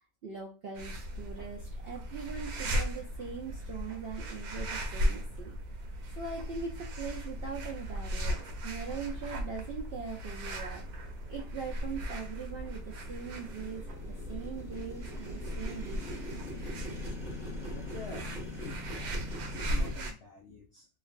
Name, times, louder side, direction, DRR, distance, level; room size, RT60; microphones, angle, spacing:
voice 1, 0.2-5.5 6.2-10.8 11.3-16.2, right 5 dB, 70° right, -1 dB, 0.5 m, -41 dB
sound 1, 0.8-20.1, equal, 90° right, 1.2 m, -37 dB
Motorcycle, 10.6-19.9, left 1 dB, 5° right, 0.7 m, -44 dB
voice 2, 17.7-20.9, left 3 dB, 65° left, -1 dB, 0.6 m, -48 dB
3.1 x 2.4 x 2.4 m, 0.32 s
omnidirectional pair, 1.6 m